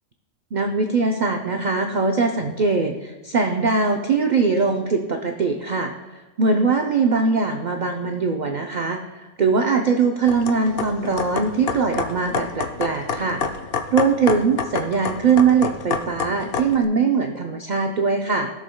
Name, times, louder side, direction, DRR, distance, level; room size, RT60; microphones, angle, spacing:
voice 1, 0.5-5.9 6.4-9.0 9.4-13.4 13.9-18.6, right 4 dB, 65° right, 3 dB, 0.4 m, -21 dB
sound 1, 10.3-16.8, left 5 dB, 55° left, 0.6 m, -29 dB
16.0 x 6.6 x 2.2 m, 1.2 s
omnidirectional pair, 1.5 m